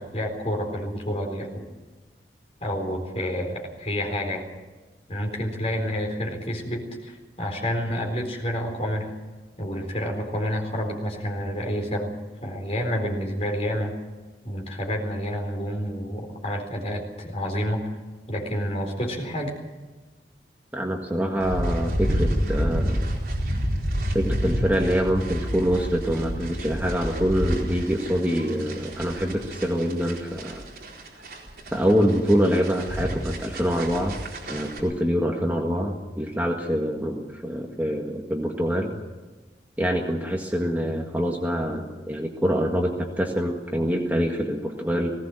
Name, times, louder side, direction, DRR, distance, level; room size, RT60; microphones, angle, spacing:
voice 1, 0.0-1.6 2.6-4.5 5.1-9.1 9.6-12.1 12.4-14.0 14.4-17.9 18.3-19.6, equal, 35° left, 1 dB, 4.2 m, -29 dB
voice 2, 20.7-23.1 24.1-30.6 31.7-34.1 34.5-38.9 39.8-45.1, equal, 10° right, 0 dB, 1.7 m, -25 dB
sound 1, 21.4-34.8, equal, 60° right, 4.3 m, -29 dB
19.5 x 17.5 x 7.7 m, 1.3 s
head